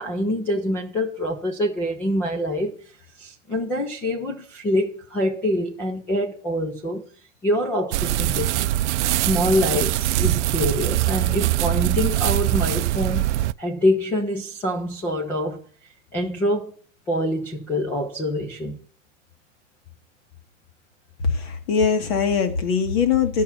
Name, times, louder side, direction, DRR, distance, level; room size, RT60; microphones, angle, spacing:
voice 1, 0.0-2.9 3.2-7.1 7.4-8.5 9.1-13.3 13.6-15.6 16.1-16.7 17.1-18.8, left 1 dB, 5° left, 0.4 m, -25 dB
sound 1, 7.9-13.5, right 16 dB, 65° right, 0.5 m, -22 dB
voice 2, 21.2-23.4, left 6 dB, 50° left, 2.1 m, -21 dB
11.0 x 5.7 x 5.6 m
supercardioid pair, 160°, 37 cm